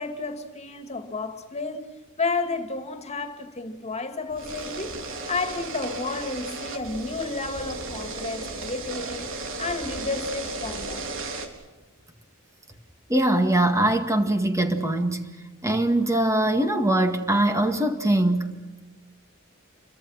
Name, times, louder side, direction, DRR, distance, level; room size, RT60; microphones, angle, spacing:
voice 1, 0.0-1.8 2.2-5.0 5.3-9.3 9.6-11.1 13.7-13.8, left 3 dB, 30° left, 2.5 m, -31 dB
sound 1, 4.3-11.5, right 3 dB, 70° right, 3.9 m, -35 dB
voice 2, 13.1-15.3 15.6-18.5, right 1 dB, 15° right, 2.0 m, -22 dB
29.0 x 24.0 x 5.9 m
head